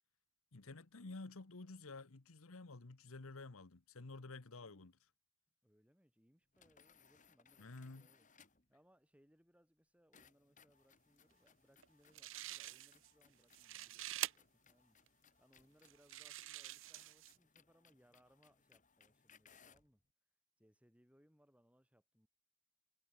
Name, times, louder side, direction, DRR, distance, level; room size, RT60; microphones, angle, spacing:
voice 1, 0.5-5.0 7.6-8.1, left 3 dB, 70° left, 1.1 m, -51 dB
voice 2, 4.5-4.9 5.6-15.0 15.4-20.0 20.6-22.3, equal, 5° right, 6.3 m, -72 dB
sound 1, 6.5-8.7 10.1-19.9, left 6 dB, 35° left, 5.5 m, -69 dB
sound 2, 11.8-11.9 12.1-13.1 13.4-14.3 15.1-15.2 15.8-17.4, right 15 dB, 55° right, 0.7 m, -46 dB
head